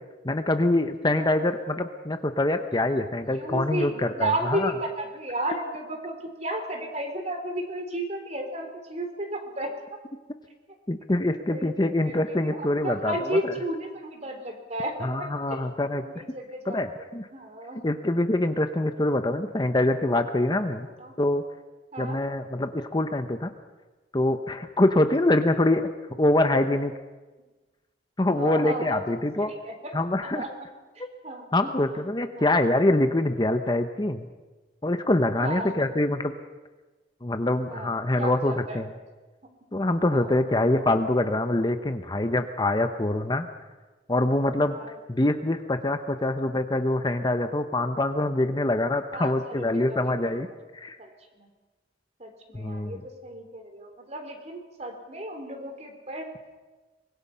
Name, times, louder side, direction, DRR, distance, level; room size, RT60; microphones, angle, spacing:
voice 1, 0.2-4.7 10.9-13.5 15.0-16.2 16.6-17.3 17.8-20.9 21.2-21.4 22.0-23.5 24.1-25.9 26.2-26.9 28.2-29.5 29.9-30.4 31.0-31.1 31.5-34.3 34.8-36.3 37.2-38.9 39.7-43.5 44.1-44.8 45.1-50.5 50.7-51.0 52.5-53.0, left 1 dB, 25° left, 8 dB, 0.8 m, -25 dB
voice 2, 3.2-6.2 6.4-9.7 11.5-11.9 12.6-15.6 16.0-16.8 17.3-17.8 21.0-21.1 21.9-22.2 28.3-29.0 29.6-29.9 30.3-30.5 31.2-31.8 32.3-32.5 35.4-35.9 37.7-37.9 38.2-38.8 40.1-40.3 44.7-44.9 49.1-49.6 49.9-50.4 51.0-51.1 51.4-51.5 52.2-56.3, right 1 dB, 35° right, 5 dB, 3.4 m, -33 dB
24.5 x 21.0 x 5.6 m, 1.2 s
head